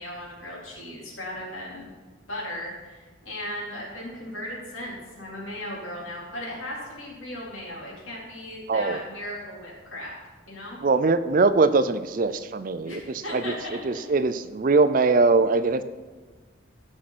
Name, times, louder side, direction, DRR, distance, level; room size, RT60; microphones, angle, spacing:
voice 1, 0.0-1.9 2.3-10.1 10.5-10.8 12.8-13.6 13.9-14.0, left 1 dB, 75° left, -5 dB, 4.1 m, -37 dB
voice 2, 8.7-9.0 10.8-15.8, right 3 dB, 40° right, 13 dB, 0.4 m, -22 dB
16.5 x 6.4 x 4.3 m, 1.4 s
head